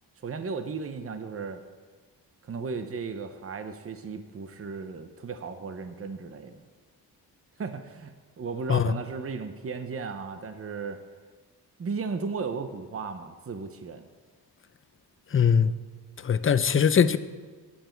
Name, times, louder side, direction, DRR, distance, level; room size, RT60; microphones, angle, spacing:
voice 1, 0.2-1.6 2.4-6.6 7.6-11.0 11.8-14.1, right 4 dB, 35° right, 0.9 m, -35 dB
voice 2, 15.3-15.7 16.2-17.2, left 7 dB, 30° left, 0.6 m, -21 dB
18.0 x 7.1 x 4.6 m
cardioid pair, 75°, 40 cm